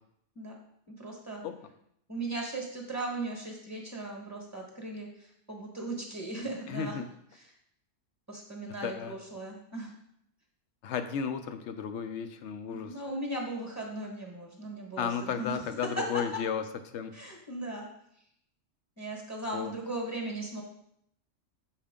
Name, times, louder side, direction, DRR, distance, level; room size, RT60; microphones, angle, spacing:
voice 1, 1.0-1.4 2.1-7.0 7.3-7.5 8.3-9.9 12.7-16.4 17.1-17.9 19.0-20.6, right 1 dB, 15° right, 0 dB, 1.1 m, -37 dB
voice 2, 6.7-7.0 8.8-9.1 10.8-12.9 15.0-16.6 16.9-17.1 19.5-19.7, left 7 dB, 70° left, 9 dB, 0.8 m, -33 dB
7.2 x 4.5 x 3.6 m, 0.73 s
omnidirectional pair, 1.4 m